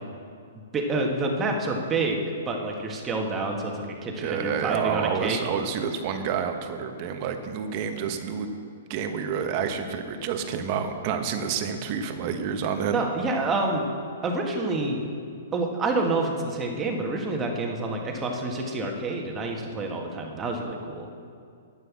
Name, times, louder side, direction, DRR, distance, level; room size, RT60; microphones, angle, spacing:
voice 1, 0.7-2.2 2.5-5.4 12.8-13.9 14.2-15.1 15.5-21.1, right 2 dB, 20° right, 1 dB, 1.7 m, -28 dB
voice 2, 4.2-8.5 8.9-13.0, right 7 dB, 40° right, 6 dB, 1.2 m, -29 dB
9.6 x 9.3 x 7.4 m, 2.3 s
hypercardioid pair, 140°, 0 cm